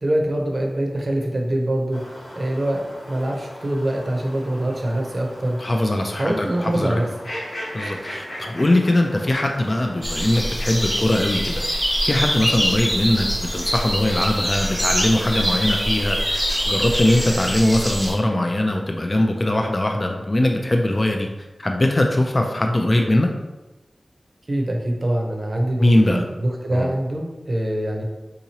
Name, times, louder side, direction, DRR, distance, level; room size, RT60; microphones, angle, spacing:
voice 1, 0.0-5.6 6.2-7.1 24.5-28.0, right 1 dB, 50° right, 1 dB, 0.6 m, -24 dB
sound 1, 1.9-17.4, equal, 75° left, 0.9 m, -39 dB
voice 2, 5.6-7.0 7.7-11.6 12.0-16.4 16.7-21.3 21.6-23.3 25.8-26.2 26.7-26.9, left 1 dB, 35° left, 2 dB, 0.3 m, -21 dB
sound 2, 10.0-18.1, equal, ahead, 0.6 m, -24 dB
3.7 x 2.9 x 2.8 m, 1.1 s
wide cardioid pair, 80°, 0 cm